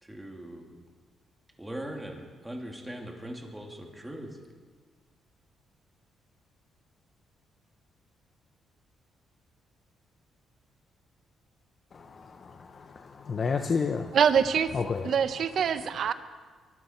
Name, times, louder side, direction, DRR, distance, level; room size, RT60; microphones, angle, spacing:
voice 1, 0.0-0.8 1.6-4.4, right 1 dB, 10° right, 1 dB, 2.8 m, -40 dB
voice 2, 11.9-14.2 14.7-15.1, left 5 dB, 45° left, 5 dB, 0.9 m, -31 dB
voice 3, 14.1-14.7 15.0-16.1, right 7 dB, 60° right, 12 dB, 0.9 m, -24 dB
23.0 x 12.5 x 4.6 m, 1.5 s
cardioid pair, 90°, 0 cm